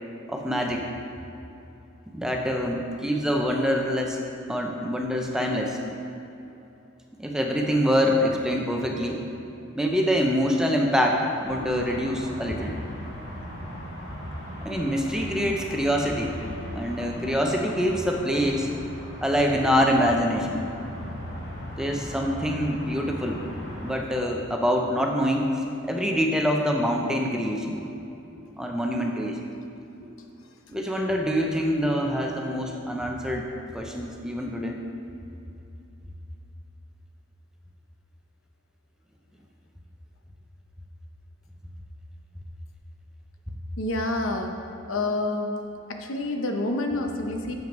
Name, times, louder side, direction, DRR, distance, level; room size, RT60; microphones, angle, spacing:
voice 1, 0.3-0.9 2.1-4.2 4.5-5.8 7.2-9.2 9.7-12.8 14.6-16.4 16.7-18.7 19.2-20.6 21.8-23.4 23.8-27.8 28.6-29.4 30.7-33.5 33.7-34.8, equal, 5° right, 1 dB, 0.5 m, -25 dB
sound 1, 11.4-23.9, equal, 50° left, 1.6 m, -38 dB
voice 2, 43.8-44.5 44.9-45.6 45.9-47.5, left 2 dB, 80° left, 3 dB, 0.8 m, -28 dB
7.4 x 6.2 x 5.1 m, 2.9 s
head